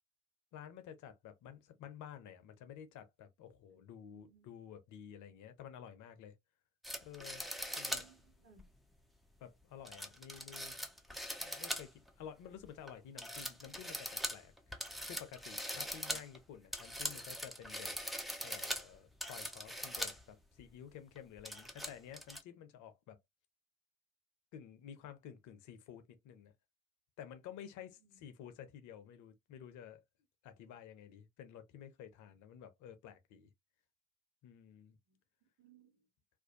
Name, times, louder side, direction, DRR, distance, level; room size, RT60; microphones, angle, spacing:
voice 1, 0.5-6.4 7.0-7.4 7.8-8.0 9.4-10.7 11.1-18.1 18.4-23.2 24.5-26.5 27.2-30.0 30.4-33.5 34.4-35.0, left 9 dB, 55° left, 0.7 m, -52 dB
voice 2, 3.7-4.5 7.7-8.6 15.7-16.2 28.0-28.2 35.1-35.2 35.6-36.0, right 7 dB, 65° right, 1.3 m, -65 dB
sound 1, 6.8-8.1 8.6-8.7 9.9-12.1 12.5-12.9 13.2-20.2 20.6-20.7 21.2-22.4, equal, ahead, 0.5 m, -42 dB
2.5 x 2.2 x 2.6 m
figure-of-eight pair, 50°, 37 cm